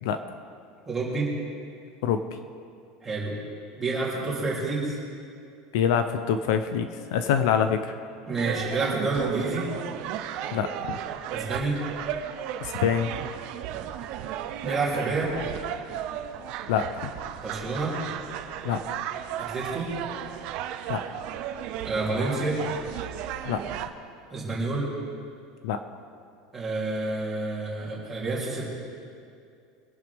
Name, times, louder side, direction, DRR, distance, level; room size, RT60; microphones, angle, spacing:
voice 1, 0.8-1.3 3.0-3.3 3.8-5.0 8.3-9.7 11.3-11.8 14.6-15.3 17.4-17.9 19.4-19.9 21.8-22.6 24.3-24.9 26.5-28.6, right 3 dB, 10° right, -7 dB, 3.4 m, -28 dB
voice 2, 5.7-7.8 10.5-11.0 12.6-13.1 16.7-17.1 18.6-18.8 20.9-21.0 23.5-23.6 25.6-25.8, left 8 dB, 65° left, 8 dB, 0.8 m, -25 dB
sound 1, 8.4-23.9, right 10 dB, 45° right, 0.7 m, -34 dB
24.0 x 11.0 x 3.6 m, 2.4 s
supercardioid pair, 175°, 2 cm